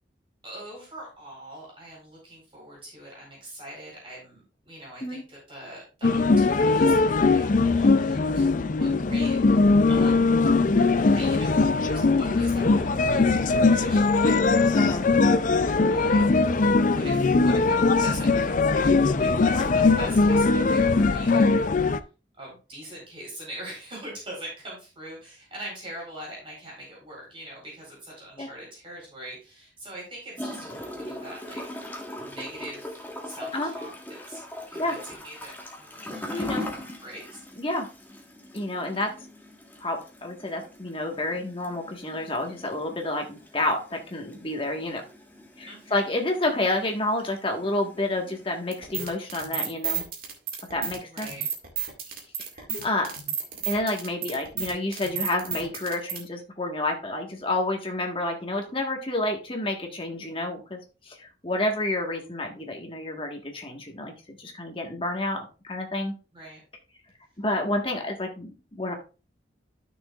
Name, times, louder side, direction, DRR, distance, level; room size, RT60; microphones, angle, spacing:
voice 1, 0.4-8.4 8.7-10.5 11.1-11.5 11.8-14.6 15.9-16.3 16.8-22.0 22.4-31.6 32.2-33.9 34.3-34.4 34.7-37.4 45.7-46.2 51.1-51.4 66.3-66.6, right 1 dB, 30° right, -3 dB, 4.2 m, -42 dB
sound 1, 6.0-22.0, left 3 dB, 45° left, 0.5 m, -21 dB
voice 2, 14.7-15.0 19.5-19.7 28.4-28.5 33.5-33.7 34.8-35.0 36.3-36.7 37.6-37.9 38.5-39.1 39.8-45.0 45.6-50.0 50.7-51.3 52.6-53.2 53.6-60.8 61.0-66.1 67.4-68.9, left 2 dB, 30° left, 2 dB, 1.5 m, -29 dB
Gurgling / Toilet flush, 30.4-48.9, left 1 dB, 10° left, 1.5 m, -41 dB
sound 2, 48.7-56.2, right 8 dB, 55° right, 2.0 m, -32 dB
12.5 x 6.3 x 2.4 m, 0.33 s
head